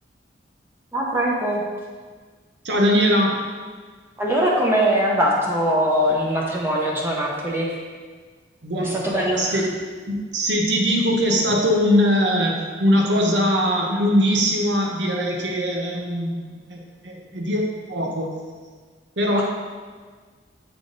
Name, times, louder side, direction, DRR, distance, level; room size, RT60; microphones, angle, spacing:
voice 1, 0.9-1.6 4.2-7.7 8.8-9.6 19.4-19.5, equal, 10° right, -4 dB, 0.7 m, -21 dB
voice 2, 2.6-3.4 8.6-9.7 10.1-17.6 17.9-18.3 19.2-19.4, equal, 75° right, 0 dB, 1.0 m, -21 dB
8.0 x 3.5 x 3.9 m, 1.5 s
head